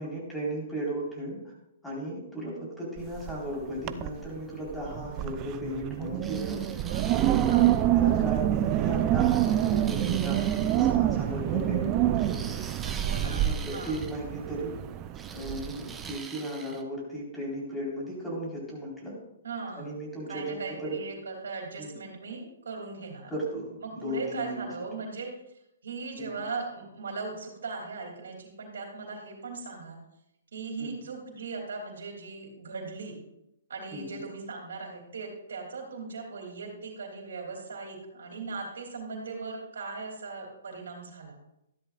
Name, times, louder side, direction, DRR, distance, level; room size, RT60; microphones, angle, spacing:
voice 1, 0.0-1.5 1.8-6.6 6.9-12.6 13.0-14.8 15.3-19.1 19.8-21.0 21.8-21.9 23.3-24.7 30.8-30.9 33.9-34.2, right 1 dB, 5° left, -4 dB, 4.2 m, -36 dB
Wind, 3.0-3.5 3.8-4.3 4.7-16.2, right 12 dB, 30° right, 0.5 m, -27 dB
sound 1, 6.2-7.9 9.2-11.0 12.2-14.2 15.1-16.8, right 5 dB, 10° right, 0.8 m, -44 dB
voice 2, 6.7-7.2 7.5-7.7 12.8-13.9 19.4-20.0 20.3-23.3 23.8-25.3 25.8-30.0 30.5-33.2 33.7-41.4, right 4 dB, 80° right, 2 dB, 2.9 m, -39 dB
13.5 x 11.5 x 2.5 m, 0.85 s
hypercardioid pair, 145°, 0 cm